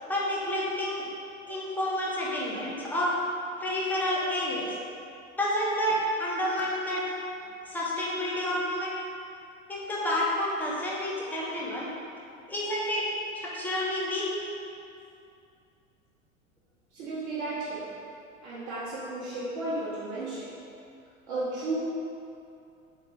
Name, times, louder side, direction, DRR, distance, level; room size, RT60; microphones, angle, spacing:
voice 1, 0.1-1.0 1.5-3.1 3.6-4.8 5.4-7.0 7.7-8.9 9.7-11.9 12.5-13.0 13.4-14.3, left 1 dB, 5° left, -5 dB, 0.5 m, -29 dB
voice 2, 16.9-17.9 18.4-20.5 21.3-21.8, right 2 dB, 55° right, -10 dB, 0.9 m, -33 dB
3.5 x 2.8 x 3.2 m, 2.6 s
figure-of-eight pair, 85°, 41 cm